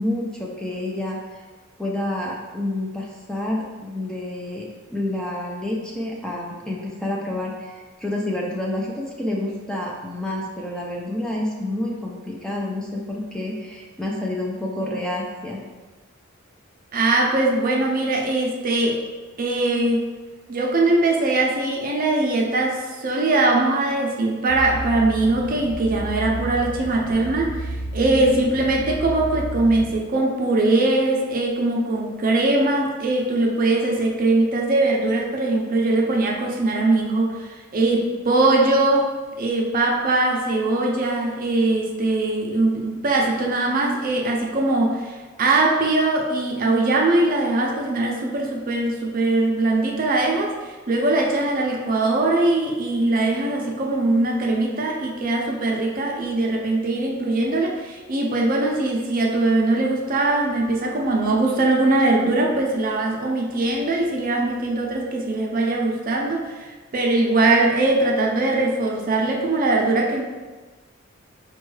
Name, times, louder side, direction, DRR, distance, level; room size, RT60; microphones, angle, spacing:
voice 1, 0.0-1.4 1.8-4.6 4.9-15.6 28.1-28.5, left 1 dB, 5° left, -3 dB, 0.4 m, -28 dB
voice 2, 16.9-19.0 19.4-20.1 20.5-39.1 39.4-70.2, right 2 dB, 45° right, -1 dB, 0.6 m, -21 dB
sound 1, 24.5-30.0, right 1 dB, 85° right, 0.6 m, -32 dB
5.3 x 2.3 x 3.1 m, 1.3 s
head